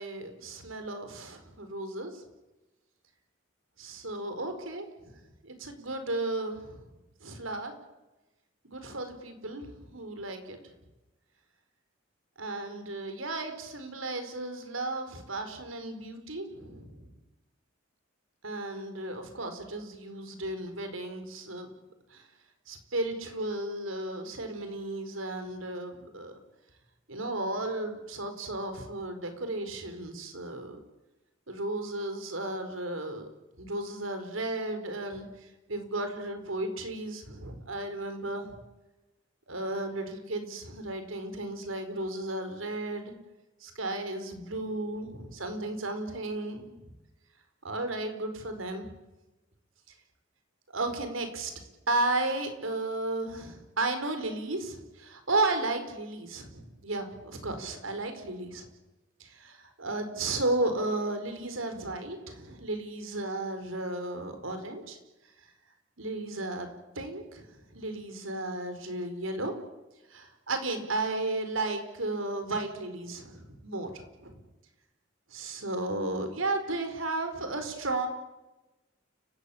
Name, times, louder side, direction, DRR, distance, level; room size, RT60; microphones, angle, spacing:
voice 1, 0.0-2.2 3.8-5.2 5.4-6.8 7.2-7.7 8.6-10.7 12.4-17.1 18.4-21.7 22.1-22.3 22.7-26.4 27.1-30.8 31.5-33.3 33.6-38.5 39.5-43.1 43.6-46.7 47.6-48.8 50.7-51.5 51.9-58.7 59.2-65.0 65.4-65.5 66.0-66.7 66.9-69.5 70.1-74.4 75.3-78.1, right 2 dB, 80° right, 7 dB, 4.9 m, -34 dB
30.0 x 16.0 x 8.8 m, 1.0 s
head